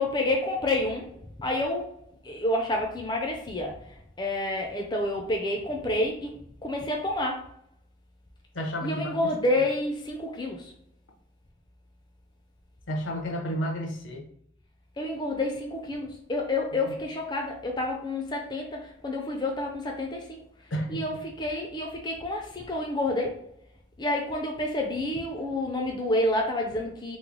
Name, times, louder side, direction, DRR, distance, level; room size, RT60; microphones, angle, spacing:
voice 1, 0.0-2.0 2.2-7.5 8.8-10.7 15.0-20.4 20.9-23.4 24.0-27.2, left 1 dB, 20° left, 0.4 m, -29 dB
voice 2, 8.5-9.2 12.9-14.3 16.8-16.9 20.7-21.1, equal, 80° left, 0.7 m, -31 dB
3.1 x 2.0 x 3.7 m
head